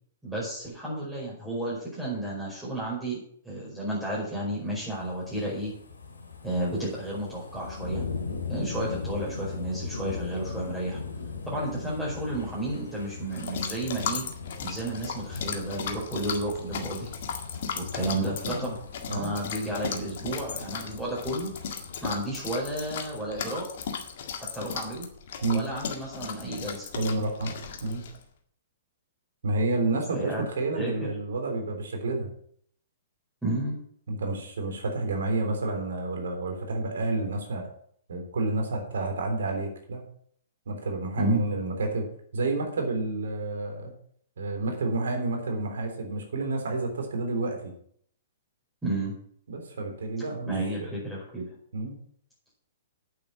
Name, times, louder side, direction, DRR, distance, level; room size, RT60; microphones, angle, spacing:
voice 1, 0.2-3.2 3.4-5.7 6.4-8.0 8.5-11.0 11.5-14.2 14.6-17.1 17.7-18.8 19.1-21.5 22.0-23.7 24.5-25.1 25.5-26.9 30.1-30.5 30.7-31.1 33.4-33.7 41.2-41.4 48.8-49.1 50.5-51.6, right 1 dB, 10° right, -7 dB, 5.0 m, -32 dB
sound 1, 4.7-22.8 23.3-23.4, left 4 dB, 70° left, 2.8 m, -39 dB
sound 2, 13.3-28.2, left 7 dB, 50° left, 1.8 m, -37 dB
voice 2, 18.3-18.7 19.1-19.3 25.4-25.7 26.9-27.5 27.8-28.1 29.4-32.3 34.1-37.7 38.1-40.0 40.7-42.1 42.3-43.9 44.4-47.6 49.5-50.5 50.8-50.9 51.7-52.0, right 2 dB, 65° right, 3 dB, 3.5 m, -29 dB
9.0 x 8.1 x 7.4 m, 0.64 s
figure-of-eight pair, 115°, 0 cm